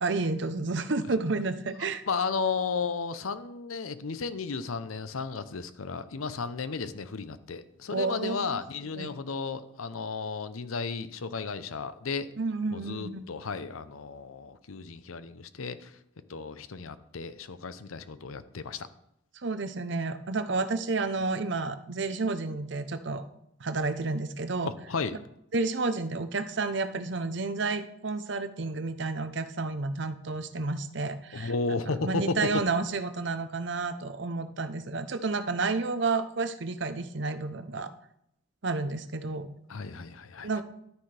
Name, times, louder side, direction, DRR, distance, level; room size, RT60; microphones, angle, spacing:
voice 1, 0.0-2.0 7.9-8.6 8.9-9.1 12.4-13.3 19.4-23.2 23.6-24.7 25.5-31.5 32.0-37.9 38.6-39.5 40.4-40.6, right 3 dB, 60° right, 10 dB, 0.7 m, -30 dB
voice 2, 2.1-12.3 12.7-16.0 16.3-18.9 24.6-25.2 31.3-32.6 39.7-40.6, left 4 dB, 90° left, 13 dB, 0.7 m, -34 dB
11.5 x 9.5 x 3.3 m, 0.75 s
head